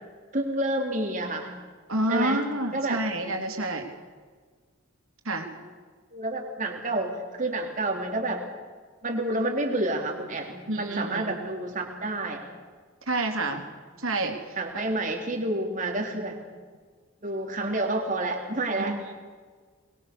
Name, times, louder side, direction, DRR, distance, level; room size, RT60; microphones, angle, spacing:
voice 1, 0.3-1.5 2.1-2.4 2.7-3.0 6.1-8.4 9.0-12.5 14.6-16.4 17.2-19.0, right 2 dB, 35° right, 2 dB, 3.7 m, -29 dB
voice 2, 1.9-3.9 5.2-5.5 10.7-11.4 13.1-13.6 14.0-14.4 14.7-14.9 18.7-19.1, right 2 dB, 80° right, 3 dB, 3.5 m, -28 dB
22.5 x 21.5 x 6.9 m, 1.5 s
head